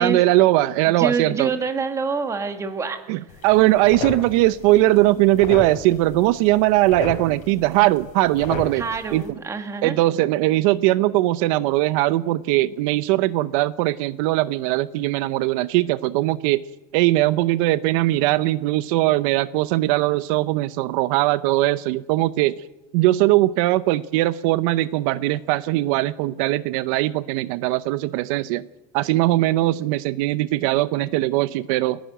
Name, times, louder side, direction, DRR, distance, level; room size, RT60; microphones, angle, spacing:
voice 1, 0.0-1.5 3.1-8.8 9.1-9.2 9.8-16.6 16.9-22.5 22.9-28.7 28.9-32.0, right 17 dB, 70° right, 15 dB, 0.6 m, -20 dB
voice 2, 0.9-3.4 8.8-10.0, right 4 dB, 15° right, 7 dB, 1.7 m, -27 dB
sound 1, 3.3-9.3, left 4 dB, 40° left, 5.3 m, -35 dB
29.5 x 11.5 x 9.2 m, 1.0 s
cardioid pair, 170°, 18 cm